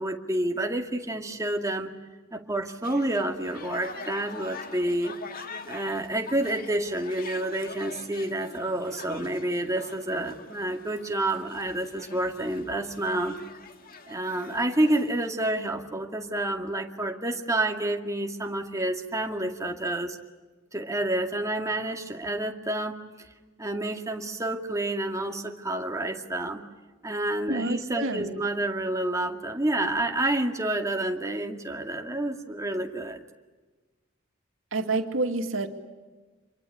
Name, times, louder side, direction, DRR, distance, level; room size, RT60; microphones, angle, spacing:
voice 1, 0.0-1.9 2.3-5.1 5.7-13.4 14.1-20.2 20.7-23.0 23.6-26.6 27.0-33.2, right 1 dB, 15° right, 3 dB, 2.2 m, -29 dB
sound 1, 2.8-15.3, left 4 dB, 45° left, 2.1 m, -44 dB
voice 2, 27.5-28.4 34.7-35.7, right 2 dB, 85° right, 6 dB, 2.4 m, -28 dB
26.5 x 23.0 x 8.6 m, 1.3 s
head